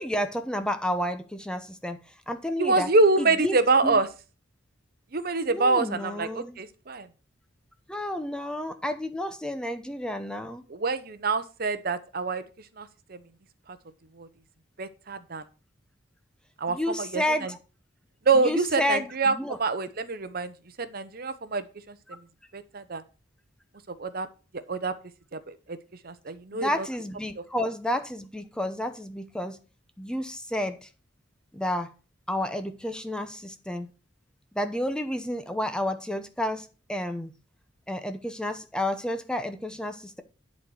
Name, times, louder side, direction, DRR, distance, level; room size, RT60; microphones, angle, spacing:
voice 1, 0.0-2.9 3.2-4.0 5.5-6.6 7.9-10.6 16.7-17.6 18.3-19.6 26.5-29.6 30.0-30.9 31.5-31.9 32.3-33.9 34.5-37.3 37.9-40.2, left 1 dB, 5° left, 0.8 m, -31 dB
voice 2, 2.6-4.1 5.1-7.1 10.7-12.4 12.8-13.2 14.2-14.3 14.8-15.4 16.6-17.5 18.3-20.5 20.8-21.9 22.5-23.0 24.0-24.3 24.7-24.9 25.3-25.8 26.0-26.9, right 3 dB, 50° right, 0.8 m, -26 dB
11.0 x 4.3 x 6.3 m
head